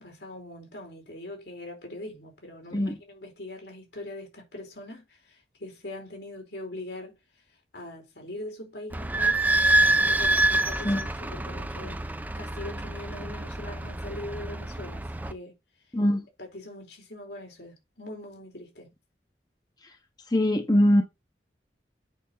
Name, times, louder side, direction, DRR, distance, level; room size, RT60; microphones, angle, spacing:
voice 1, 0.0-7.2 7.7-9.4 10.1-12.1 12.3-15.5 16.4-18.9, left 1 dB, 75° left, 4.6 m, -42 dB
Idling / Squeak, 8.9-15.3, right 2 dB, 10° right, 0.7 m, -26 dB
voice 2, 15.9-16.3 20.3-21.0, left 1 dB, 20° left, 1.1 m, -22 dB
8.2 x 6.3 x 4.1 m
head